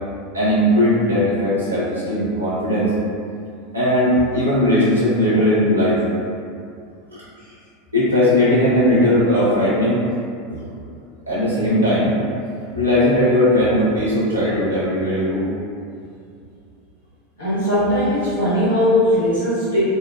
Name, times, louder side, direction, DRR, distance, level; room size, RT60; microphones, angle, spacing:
voice 1, 0.3-2.9 3.7-6.0 7.9-10.0 10.5-10.6 11.3-12.1 12.7-15.4, left 1 dB, 80° right, -10 dB, 0.8 m, -18 dB
voice 2, 17.4-19.8, equal, 85° left, -11 dB, 0.8 m, -19 dB
2.6 x 2.3 x 2.3 m, 2.4 s
figure-of-eight pair, 80°, 0 cm